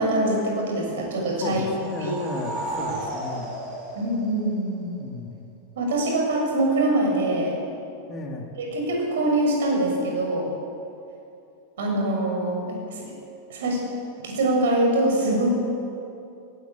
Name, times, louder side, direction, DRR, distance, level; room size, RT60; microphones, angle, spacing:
voice 1, 0.0-1.6 2.0-2.1 2.7-2.9 3.9-4.9 5.7-7.6 8.5-10.5 11.8-13.2 13.5-13.8 14.2-15.5, right 1 dB, 60° right, 1 dB, 6.7 m, -24 dB
voice 2, 1.4-3.6 5.0-5.4 8.1-8.5, left 2 dB, 25° left, 2 dB, 3.1 m, -34 dB
sound 1, 1.4-4.9, right 1 dB, 40° right, 6.6 m, -34 dB
19.0 x 19.0 x 8.7 m, 2.6 s
figure-of-eight pair, 90°, 0 cm